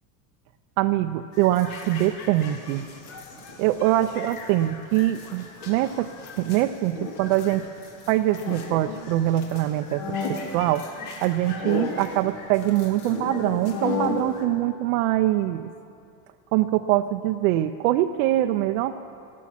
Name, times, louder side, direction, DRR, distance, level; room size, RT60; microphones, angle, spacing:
voice 1, 0.8-2.9 3.6-7.7 8.1-10.9 11.2-15.7 16.5-19.0, right 14 dB, 75° right, 7 dB, 0.6 m, -23 dB
sound 1, 1.3-14.4, left 4 dB, 80° left, 2.1 m, -35 dB
13.5 x 11.5 x 5.8 m, 2.5 s
supercardioid pair, 130°, 43 cm